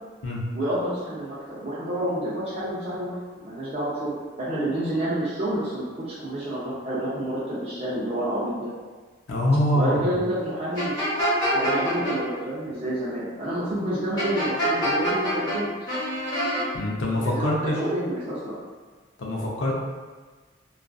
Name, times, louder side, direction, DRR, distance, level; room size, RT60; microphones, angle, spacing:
voice 1, 0.5-8.7 9.7-11.0 11.5-15.7 17.2-18.6, right 1 dB, 30° right, -10 dB, 0.4 m, -29 dB
voice 2, 9.3-10.0 16.7-17.8 19.2-19.8, left 1 dB, 85° left, -4 dB, 0.5 m, -24 dB
sound 1, 10.8-12.1 14.2-15.6 15.9-16.6, equal, 20° left, 0.8 m, -25 dB
2.4 x 2.3 x 2.2 m, 1.4 s
head